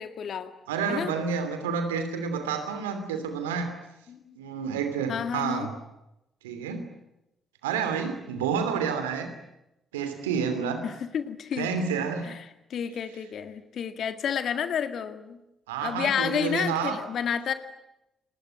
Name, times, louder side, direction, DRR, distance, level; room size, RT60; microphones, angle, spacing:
voice 1, 0.0-0.5 0.9-1.1 4.1-4.4 5.1-5.7 10.8-11.7 12.2-12.4 12.7-15.4 15.8-17.5, left 8 dB, 60° left, 10 dB, 2.0 m, -30 dB
voice 2, 0.7-3.7 4.4-5.7 6.4-6.8 7.6-9.3 9.9-10.8 11.6-12.3 15.7-17.0, right 6 dB, 85° right, 8 dB, 2.9 m, -29 dB
29.0 x 20.5 x 9.0 m, 0.89 s
hypercardioid pair, 40°, 0 cm